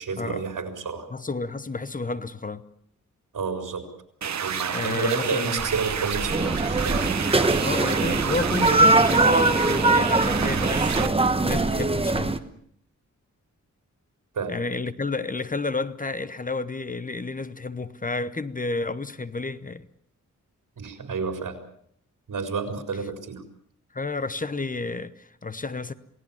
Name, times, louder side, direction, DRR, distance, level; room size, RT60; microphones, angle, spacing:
voice 1, 0.0-1.1 3.3-3.9 4.4-7.2 14.3-14.5 20.8-21.6 22.3-23.4, right 5 dB, 85° right, 4.4 m, -30 dB
voice 2, 1.1-2.6 4.7-5.6 7.6-12.4 14.5-19.9 23.9-25.9, left 3 dB, 25° left, 0.9 m, -31 dB
sound 1, 4.2-11.1, right 7 dB, 60° right, 1.1 m, -30 dB
sound 2, 5.6-12.1, right 3 dB, 35° right, 4.0 m, -37 dB
sound 3, 6.3-12.4, right 2 dB, 20° right, 1.2 m, -22 dB
28.0 x 18.0 x 7.2 m
wide cardioid pair, 150°, 31 cm